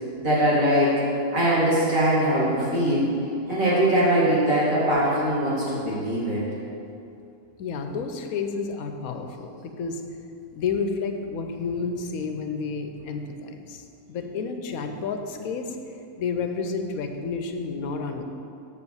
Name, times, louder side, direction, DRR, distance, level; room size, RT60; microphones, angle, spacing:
voice 1, 0.2-1.0 1.3-3.1 3.5-6.4, equal, 70° right, -8 dB, 2.3 m, -21 dB
voice 2, 7.6-10.0 10.5-15.8 16.2-18.2, left 5 dB, 85° left, 6 dB, 1.1 m, -30 dB
6.8 x 5.0 x 7.0 m, 2.7 s
omnidirectional pair, 1.5 m